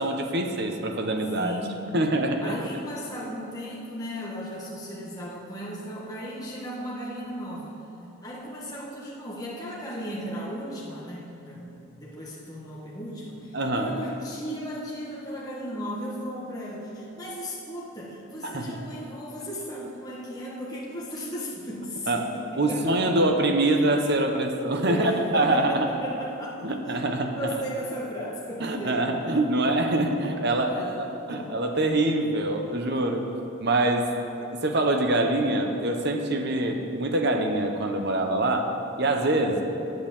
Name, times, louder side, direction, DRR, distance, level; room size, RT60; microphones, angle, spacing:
voice 1, 0.0-1.5 1.9-2.5 13.5-13.9 18.4-18.8 22.1-22.2 22.6-25.9 26.6-27.6 28.6-33.2 33.6-34.1 34.4-38.7 39.0-39.6, right 2 dB, 50° right, 4 dB, 0.9 m, -25 dB
voice 2, 1.3-2.0 2.4-7.8 8.2-23.2 24.8-27.0 27.4-29.3 30.6-31.5 32.7-32.8, equal, 15° left, -5 dB, 1.4 m, -36 dB
8.7 x 8.0 x 7.2 m, 2.8 s
head